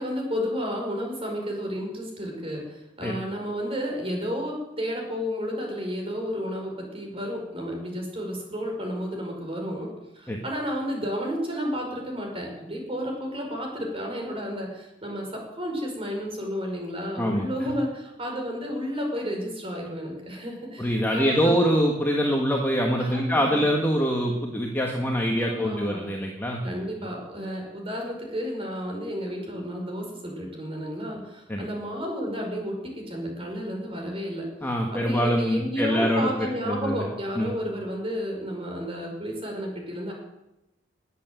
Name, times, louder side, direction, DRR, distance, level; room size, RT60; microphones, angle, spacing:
voice 1, 0.0-21.6 23.0-23.6 25.4-26.0 26.6-34.5 34.9-40.1, equal, 30° right, 1 dB, 5.2 m, -32 dB
voice 2, 17.2-17.7 20.8-26.8 31.5-31.7 34.6-37.0 37.4-37.5, equal, 10° left, 0 dB, 1.6 m, -24 dB
20.5 x 8.3 x 7.8 m, 0.92 s
head